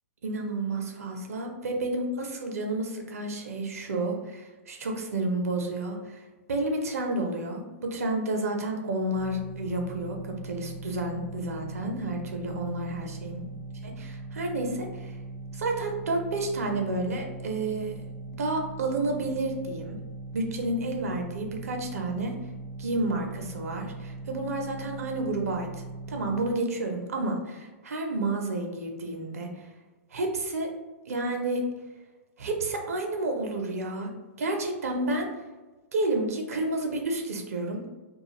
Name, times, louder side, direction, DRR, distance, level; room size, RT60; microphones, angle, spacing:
voice 1, 0.2-6.2 6.5-13.4 13.8-15.2 15.5-17.9 18.4-20.0 20.3-22.3 22.8-29.7 30.1-30.7 31.1-31.6 32.4-34.1 34.4-35.3 35.9-37.8, right 2 dB, 80° right, 2 dB, 0.6 m, -30 dB
sound 1, 9.1-26.5, right 3 dB, 20° left, 0.6 m, -40 dB
2.5 x 2.3 x 2.9 m, 1.2 s
hypercardioid pair, 130°, 8 cm